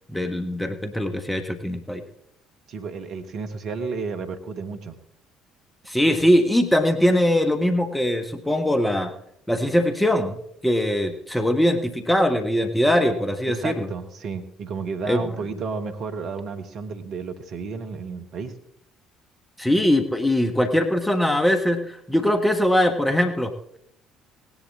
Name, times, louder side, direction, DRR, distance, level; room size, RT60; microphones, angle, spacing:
voice 1, 0.1-2.0 5.9-9.1 9.5-10.4 10.6-13.9 15.1-15.2 19.6-23.8, left 1 dB, 10° left, 6 dB, 1.4 m, -21 dB
voice 2, 2.7-4.9 13.4-18.5, right 5 dB, 55° right, 6 dB, 1.4 m, -32 dB
17.5 x 11.0 x 3.6 m, 0.73 s
figure-of-eight pair, 50°, 0 cm